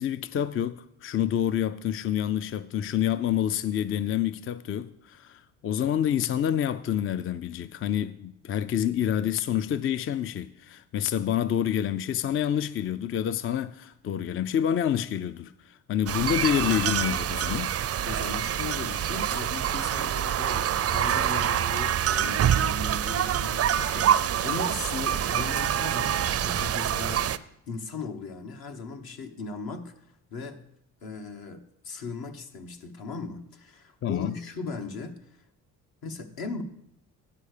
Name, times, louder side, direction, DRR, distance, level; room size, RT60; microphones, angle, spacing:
voice 1, 0.0-17.7 34.0-34.4, left 10 dB, 35° left, 0.4 m, -28 dB
sound 1, 16.1-27.4, right 10 dB, 40° right, 0.4 m, -26 dB
voice 2, 18.1-30.6 31.0-35.2 36.0-36.6, left 4 dB, 65° left, 1.2 m, -38 dB
10.0 x 4.7 x 6.6 m
supercardioid pair, 65°, 39 cm